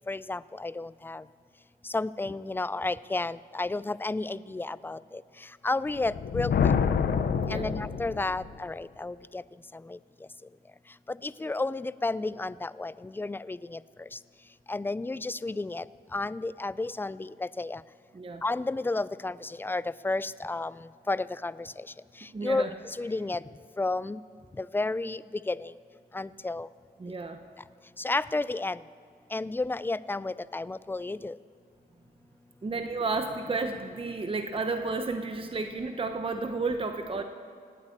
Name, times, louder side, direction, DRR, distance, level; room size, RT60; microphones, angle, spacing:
voice 1, 0.1-1.2 1.9-5.2 5.6-6.7 7.5-9.4 9.9-10.0 11.1-13.8 14.7-15.8 16.1-17.8 18.4-20.7 21.1-21.7 22.4-22.7 23.0-23.4 23.8-24.2 24.6-25.7 26.1-26.7 28.0-28.8 29.3-31.4, left 2 dB, 10° left, 18 dB, 0.3 m, -32 dB
Thunder, 5.9-8.6, left 6 dB, 75° left, 0.8 m, -27 dB
voice 2, 7.4-7.7 18.1-18.4 22.3-22.8 27.0-27.4 32.6-37.2, right 3 dB, 35° right, 7 dB, 0.9 m, -32 dB
18.5 x 8.4 x 8.6 m, 2.2 s
cardioid pair, 80°, 17 cm